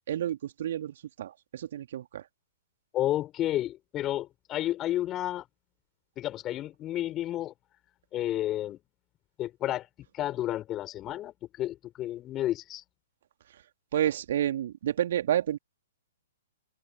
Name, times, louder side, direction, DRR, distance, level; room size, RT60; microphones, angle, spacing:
voice 1, 0.1-2.3 13.9-15.6, right 11 dB, 50° right, 2.8 m, -30 dB
voice 2, 2.9-5.4 6.2-7.5 8.1-8.8 9.4-9.9 10.1-12.8, left 13 dB, 25° left, 5.7 m, -31 dB
open air
figure-of-eight pair, 115°, 0 cm